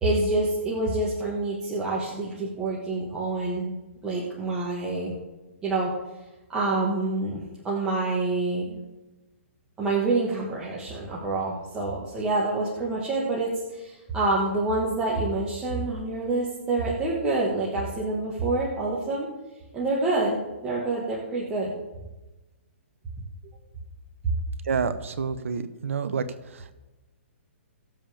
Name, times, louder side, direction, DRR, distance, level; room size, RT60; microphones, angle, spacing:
voice 1, 0.0-3.7 4.0-5.2 5.6-5.9 6.5-8.8 9.8-19.3 19.7-21.7, right 2 dB, 10° right, -6 dB, 1.7 m, -27 dB
voice 2, 24.7-26.2 26.5-26.7, right 5 dB, 75° right, 10 dB, 1.2 m, -28 dB
18.5 x 7.4 x 3.5 m, 1.1 s
hypercardioid pair, 160°, 7 cm